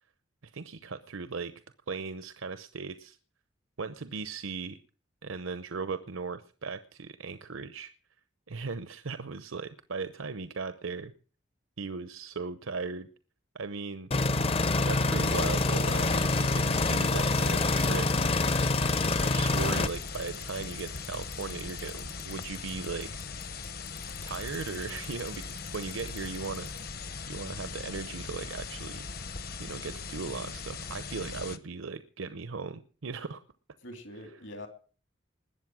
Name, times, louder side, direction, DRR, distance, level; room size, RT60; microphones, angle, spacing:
voice 1, 0.4-1.5 1.9-3.2 3.8-4.8 5.2-7.9 8.5-11.1 11.8-13.1 13.5-14.1 14.9-18.1 19.2-23.2 24.2-26.7 27.3-29.1 29.6-33.4, right 4 dB, 85° right, 12 dB, 0.8 m, -37 dB
sound 1, 14.1-19.9, left 2 dB, 30° left, 0.6 m, -26 dB
Bicycle, 15.2-26.9, left 6 dB, 90° left, 3.6 m, -52 dB
sound 2, 15.2-31.6, left 4 dB, 50° left, 1.0 m, -40 dB
voice 2, 33.8-34.7, left 1 dB, 70° left, 7 dB, 3.0 m, -45 dB
20.5 x 7.9 x 6.1 m, 0.40 s
head